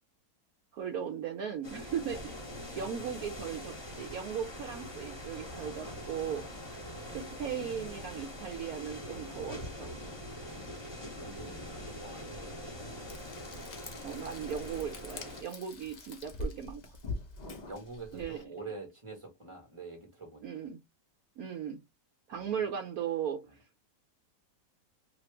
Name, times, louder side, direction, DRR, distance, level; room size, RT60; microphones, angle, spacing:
voice 1, 0.7-2.4 2.7-6.5 7.1-10.0 14.0-16.8 18.1-18.4 20.4-20.8 21.4-21.8 22.3-23.6, right 8 dB, 70° right, 0.9 m, -37 dB
sound 1, 1.6-15.4, left 1 dB, 15° left, 1.3 m, -43 dB
voice 2, 11.1-12.9 17.7-20.5 22.3-22.5 23.5-23.6, right 3 dB, 20° right, 1.2 m, -46 dB
Frying (food), 13.1-18.4, left 2 dB, 65° left, 0.4 m, -44 dB
2.9 x 2.5 x 3.3 m
omnidirectional pair, 1.9 m